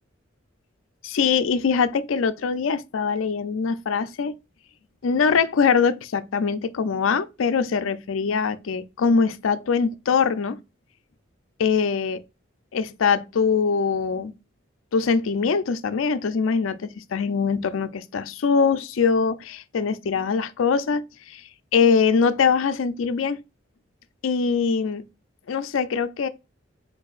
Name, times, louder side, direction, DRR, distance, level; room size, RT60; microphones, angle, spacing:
voice 1, 1.0-4.4 5.0-10.6 11.6-12.2 12.7-14.3 14.9-21.4 21.7-23.4 24.2-25.0 25.5-26.3, left 5 dB, 80° left, 0.4 m, -22 dB
4.4 x 4.0 x 2.4 m
head